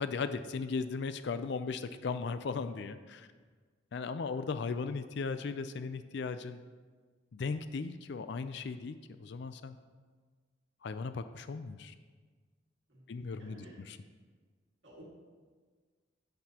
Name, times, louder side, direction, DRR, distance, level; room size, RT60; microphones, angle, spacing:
voice 1, 0.0-3.3 3.9-6.6 7.3-9.8 10.8-11.9 13.1-14.0, left 4 dB, 65° left, 11 dB, 0.4 m, -37 dB
voice 2, 12.9-13.8 14.8-15.1, right 1 dB, 70° right, -4 dB, 1.8 m, -54 dB
10.5 x 8.0 x 2.9 m, 1.5 s
head